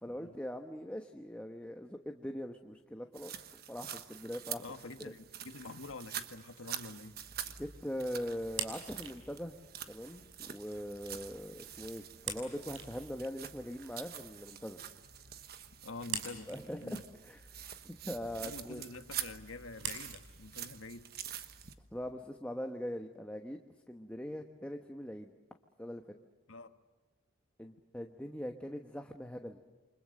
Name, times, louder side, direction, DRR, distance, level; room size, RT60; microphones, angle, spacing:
voice 1, 0.0-4.6 5.0-5.1 7.6-9.6 9.9-14.8 16.5-17.4 17.8-18.8 21.9-23.6 23.9-25.3 25.8-26.0 27.6-29.6, equal, 5° left, 4 dB, 1.1 m, -41 dB
sound 1, 3.1-21.7, right 10 dB, 50° right, 1.3 m, -46 dB
voice 2, 4.6-7.2 15.8-16.5 16.8-17.0 18.3-21.1 26.5-26.8, left 3 dB, 90° left, 8 dB, 1.6 m, -47 dB
sound 2, 6.8-22.1, right 5 dB, 75° right, 6.0 m, -48 dB
29.0 x 25.5 x 6.5 m, 1.2 s
head